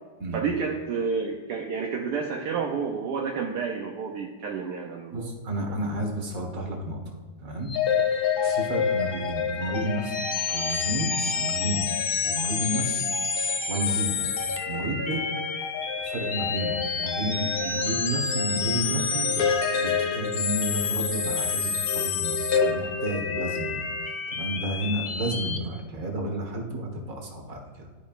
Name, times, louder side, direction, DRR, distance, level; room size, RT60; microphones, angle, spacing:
voice 1, 0.3-5.3, right 5 dB, 75° right, 1 dB, 1.3 m, -30 dB
voice 2, 5.1-7.0 7.4-7.7 8.4-10.1 10.5-11.9 12.2-13.1 13.7-14.3 14.7-15.2 16.0-23.8 24.3-27.6, right 1 dB, 55° right, 2 dB, 1.7 m, -31 dB
sound 1, 7.7-25.6, left 6 dB, 70° left, 0.5 m, -27 dB
sound 2, 8.3-9.0 10.6-11.6 12.6-14.5, right 3 dB, 40° right, 0.9 m, -47 dB
12.0 x 5.2 x 2.4 m, 1.4 s
omnidirectional pair, 1.8 m